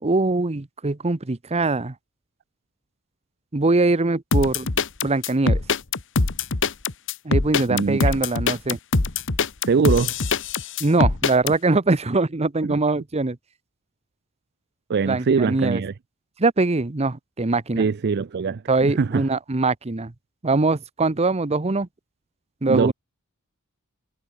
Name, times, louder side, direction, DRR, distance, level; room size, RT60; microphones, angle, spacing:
voice 1, 0.0-1.9 3.5-4.7 5.0-5.6 7.2-8.8 10.8-13.4 15.0-15.8 16.4-17.9 18.7-20.1 20.4-21.9 22.6-22.9, right 3 dB, 30° right, 0.9 m, -22 dB
sound 1, 4.3-11.5, left 3 dB, 60° left, 1.5 m, -22 dB
voice 2, 7.7-8.0 9.7-10.1 12.6-12.8 14.9-15.9 17.8-19.3 22.7-22.9, right 5 dB, 50° right, 0.4 m, -22 dB
head